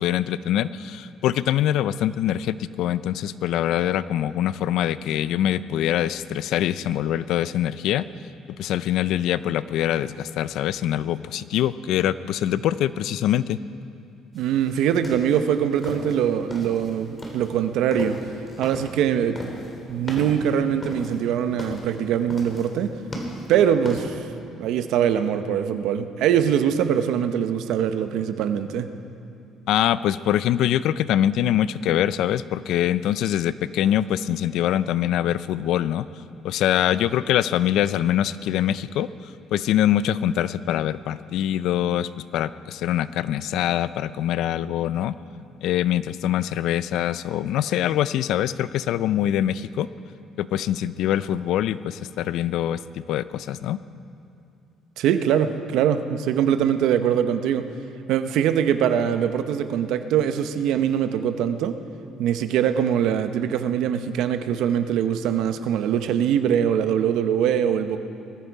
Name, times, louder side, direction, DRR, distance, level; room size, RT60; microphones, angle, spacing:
voice 1, 0.0-8.1 8.6-13.6 29.7-36.1 36.4-39.1 39.5-45.1 45.6-49.9 50.4-53.8, left 11 dB, 70° left, 16 dB, 0.4 m, -24 dB
sound 1, 14.3-24.0, equal, 20° left, 2.7 m, -36 dB
voice 2, 14.3-18.2 18.6-19.4 19.9-22.9 23.5-24.2 24.6-28.9 55.0-57.6 58.1-61.7 62.2-68.0, right 9 dB, 75° right, 9 dB, 0.9 m, -22 dB
20.0 x 14.0 x 4.7 m, 2.6 s
cardioid pair, 135°, 0 cm